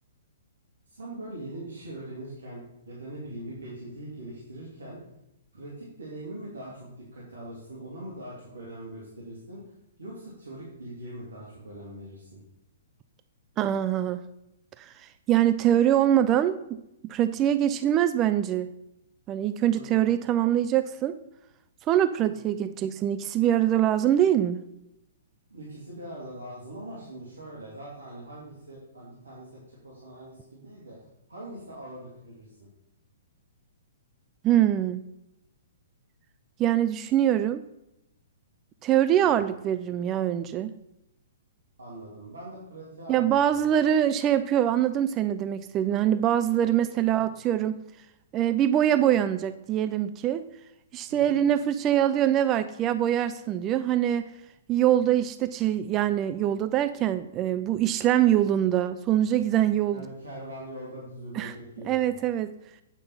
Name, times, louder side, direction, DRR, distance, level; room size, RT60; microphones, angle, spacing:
voice 1, 0.9-5.0 5.5-9.6 10.0-12.4 19.7-20.1 22.2-22.5 25.5-32.7 39.2-39.4 41.8-43.6 47.1-47.3 51.1-51.4 59.9-62.2, right 1 dB, 80° right, -5 dB, 2.5 m, -42 dB
voice 2, 13.6-14.2 14.8-16.8 17.1-18.7 19.3-21.2 21.9-24.6 34.4-35.0 36.6-37.6 38.8-40.7 43.1-47.8 48.3-50.4 50.9-54.3 54.7-60.1 61.3-61.6 61.8-62.5, right 11 dB, 25° right, 12 dB, 0.4 m, -24 dB
8.5 x 5.4 x 5.5 m, 0.85 s
figure-of-eight pair, 120°, 0 cm